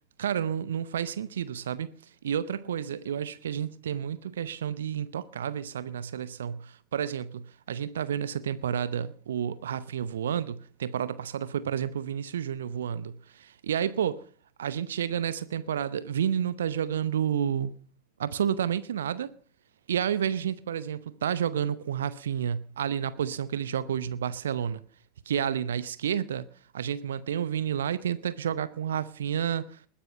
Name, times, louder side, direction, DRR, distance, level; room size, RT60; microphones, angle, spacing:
voice 1, 0.2-1.9 2.2-14.2 14.6-17.7 18.2-19.3 19.9-24.8 25.3-26.5 26.7-29.8, right 9 dB, 65° right, 0.7 m, -30 dB
20.5 x 10.0 x 5.5 m
figure-of-eight pair, 90°, 0 cm